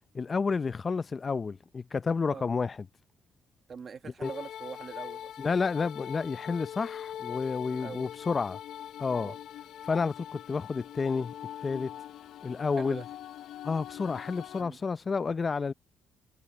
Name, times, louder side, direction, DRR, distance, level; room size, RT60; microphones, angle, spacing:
voice 1, 0.1-2.8 4.2-4.3 5.4-8.6 9.0-9.3 9.9-11.3 11.6-11.9 12.4-13.0 13.6-15.7, left 4 dB, 35° left, 0.5 m, -30 dB
voice 2, 3.7-5.3 7.7-8.1 9.1-9.4 12.8-13.1 14.6-14.8, right 6 dB, 45° right, 1.3 m, -43 dB
sound 1, 4.2-14.6, left 10 dB, 80° left, 0.6 m, -42 dB
cardioid pair, 90°, 0 cm